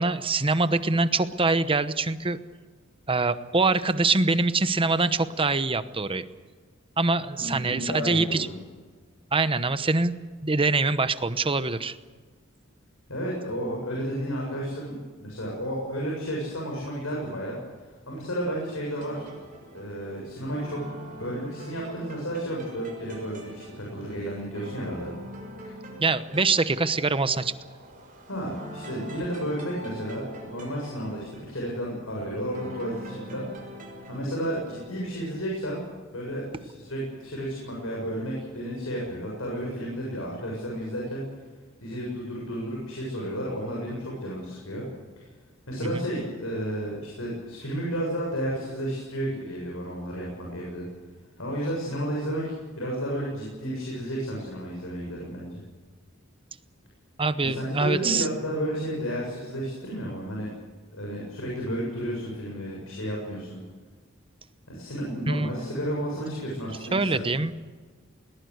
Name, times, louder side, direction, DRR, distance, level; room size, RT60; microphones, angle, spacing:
voice 1, 0.0-2.4 3.1-6.3 7.0-8.5 9.3-10.1 10.4-12.0 26.0-27.5 45.8-46.1 57.2-58.3 65.3-65.5 66.9-67.5, right 3 dB, 25° right, 12 dB, 1.0 m, -24 dB
voice 2, 7.4-8.5 13.1-17.5 18.1-19.3 19.7-20.8 21.1-25.1 25.6-25.7 28.3-33.4 34.1-35.8 36.1-41.2 41.8-44.8 45.2-45.3 45.7-50.8 51.4-55.6 57.4-60.5 60.9-63.6 64.7-67.3, equal, 85° left, -2 dB, 7.2 m, -32 dB
sound 1, 18.9-35.3, equal, 40° right, 6.6 m, -43 dB
21.0 x 20.0 x 8.1 m, 1.4 s
head